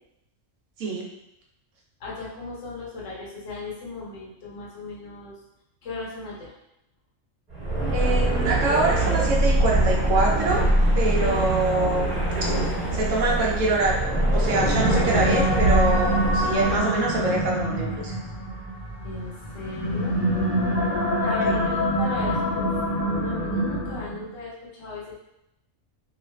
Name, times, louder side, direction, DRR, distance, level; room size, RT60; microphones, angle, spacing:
voice 1, 2.0-5.3 5.8-6.5 19.0-20.2 21.2-22.7 23.0-25.2, left 2 dB, 70° left, -5 dB, 1.1 m, -36 dB
sound 1, 7.5-16.8, right 1 dB, 40° right, 1.2 m, -23 dB
voice 2, 7.9-10.7 10.9-14.0 14.3-18.1, right 2 dB, 75° right, -2 dB, 1.1 m, -25 dB
sound 2, 14.4-24.2, equal, 50° left, 0.7 m, -26 dB
3.1 x 2.4 x 3.1 m, 0.84 s
omnidirectional pair, 1.4 m